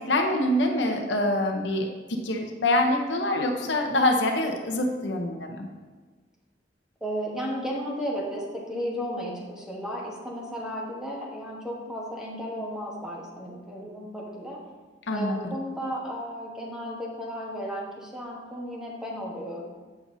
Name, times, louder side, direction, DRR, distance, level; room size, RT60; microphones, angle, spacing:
voice 1, 0.1-1.9 2.2-5.7 15.1-15.3, left 1 dB, 80° left, 3 dB, 0.7 m, -25 dB
voice 2, 7.0-14.6 15.1-19.7, equal, 5° right, -3 dB, 1.1 m, -34 dB
7.6 x 6.1 x 2.7 m, 1.3 s
head